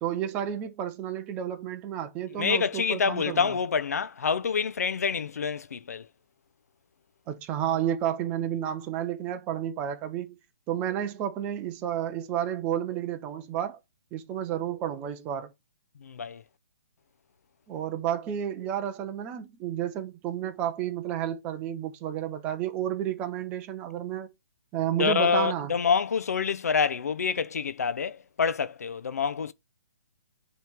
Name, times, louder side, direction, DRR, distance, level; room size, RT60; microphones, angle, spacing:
voice 1, 0.0-3.5 7.3-10.4 10.7-13.8 14.1-15.5 17.7-24.3 24.7-25.7, right 10 dB, 15° right, 0.5 m, -31 dB
voice 2, 2.3-6.1 16.0-16.4 25.0-29.5, left 6 dB, 85° left, 0.6 m, -27 dB
9.1 x 3.1 x 3.5 m
hypercardioid pair, 165°, 8 cm